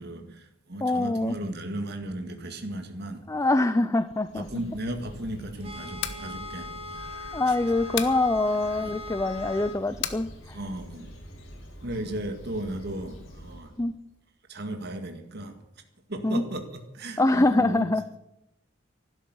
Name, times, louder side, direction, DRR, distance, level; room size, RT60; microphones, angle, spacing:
voice 1, 0.0-3.2 4.3-7.1 7.5-7.6 8.8-8.9 10.5-11.1 11.8-13.7 14.5-15.6 16.1-17.8, right 1 dB, 55° right, 6 dB, 1.9 m, -35 dB
voice 2, 0.8-1.4 3.3-4.5 7.3-10.6 13.8-13.9 16.2-16.5 17.2-18.2, left 2 dB, 15° left, 12 dB, 0.5 m, -24 dB
Bird, 4.0-14.0, equal, 85° left, 4.3 m, -46 dB
sound 1, 5.6-9.8, left 3 dB, 30° right, 2.0 m, -40 dB
sound 2, 6.0-6.3 8.0-8.2 10.0-10.2, left 10 dB, 60° left, 1.3 m, -32 dB
12.0 x 12.0 x 9.5 m, 0.86 s
head